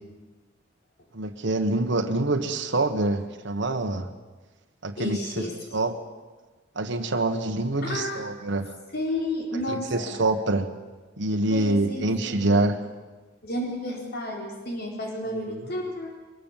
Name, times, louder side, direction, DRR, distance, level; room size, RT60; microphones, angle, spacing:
voice 1, 1.1-4.1 4.8-5.5 5.7-6.0 6.7-8.7 9.7-10.7 11.2-12.8 15.5-15.6, right 2 dB, 65° right, 4 dB, 1.5 m, -26 dB
voice 2, 5.0-5.6 7.8-8.2 8.9-10.1 11.5-12.8 13.4-16.1, left 1 dB, 55° left, 0 dB, 4.4 m, -32 dB
23.0 x 21.5 x 7.5 m, 1.3 s
head